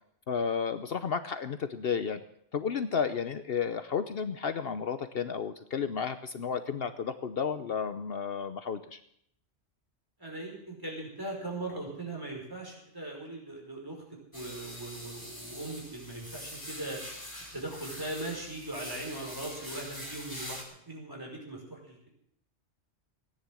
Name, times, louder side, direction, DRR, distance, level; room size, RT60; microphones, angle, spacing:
voice 1, 0.3-2.2 2.5-9.0, left 6 dB, 60° left, 10 dB, 1.0 m, -32 dB
voice 2, 10.2-14.0 14.3-17.0 17.5-22.1, right 2 dB, 20° right, -1 dB, 5.4 m, -39 dB
sound 1, 14.3-20.6, left 1 dB, 15° left, 4.9 m, -44 dB
17.5 x 10.0 x 7.7 m, 0.69 s
omnidirectional pair, 1.2 m